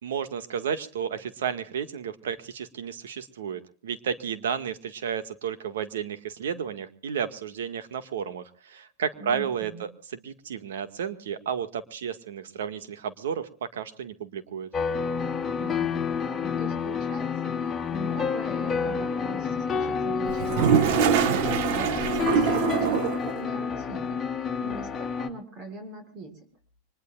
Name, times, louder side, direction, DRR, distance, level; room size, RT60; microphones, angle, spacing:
voice 1, 0.0-14.7, right 7 dB, 90° right, 11 dB, 1.9 m, -32 dB
voice 2, 9.2-9.9 15.6-26.5, right 1 dB, 35° right, 7 dB, 6.2 m, -42 dB
sound 1, 14.7-25.3, left 6 dB, 15° left, 2.2 m, -29 dB
Toilet flush, 20.3-23.3, right 8 dB, 60° right, 1.5 m, -24 dB
25.5 x 20.5 x 2.5 m, 0.38 s
supercardioid pair, 140°, 0 cm